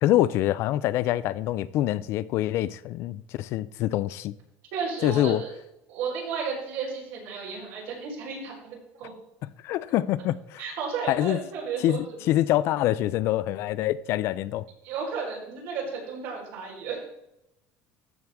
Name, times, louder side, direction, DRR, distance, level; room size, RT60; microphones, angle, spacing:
voice 1, 0.0-4.3 5.0-5.4 9.6-10.6 11.1-11.4 11.8-14.7, left 14 dB, 50° left, 0.3 m, -25 dB
voice 2, 4.7-5.5 5.9-9.1 10.6-12.2 14.8-17.0, right 5 dB, 80° right, 4.1 m, -33 dB
14.5 x 6.1 x 3.5 m
cardioid pair, 165°, 5 cm